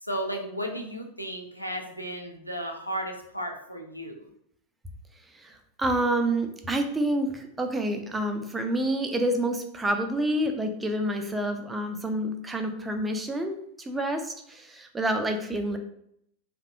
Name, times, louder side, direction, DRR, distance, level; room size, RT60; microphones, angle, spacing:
voice 1, 0.0-4.3, equal, 90° left, 2 dB, 0.4 m, -34 dB
voice 2, 5.3-15.8, right 1 dB, 10° right, 5 dB, 0.3 m, -28 dB
2.6 x 2.1 x 2.3 m, 0.71 s
figure-of-eight pair, 90°, 0 cm